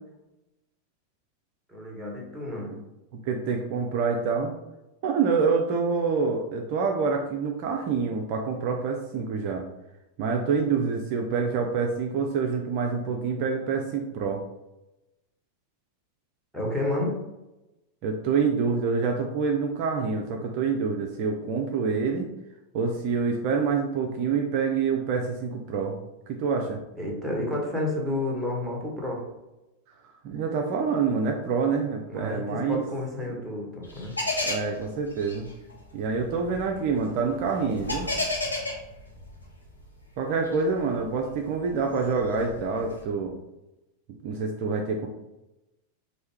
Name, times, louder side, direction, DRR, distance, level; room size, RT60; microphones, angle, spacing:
voice 1, 1.7-2.8 16.5-17.2 26.9-29.2 32.1-34.1, left 1 dB, 5° right, -4 dB, 1.3 m, -30 dB
voice 2, 3.3-4.5 5.0-9.7 10.2-14.4 18.0-22.3 22.7-26.0 26.3-26.8 30.2-32.8 34.4-35.5 35.9-38.1 40.2-43.3 44.2-45.1, right 5 dB, 45° right, 2 dB, 0.5 m, -26 dB
sound 1, 33.8-39.9 40.4-43.0, left 2 dB, 85° left, 1.0 m, -33 dB
4.4 x 2.7 x 3.4 m, 0.96 s
figure-of-eight pair, 90°, 0 cm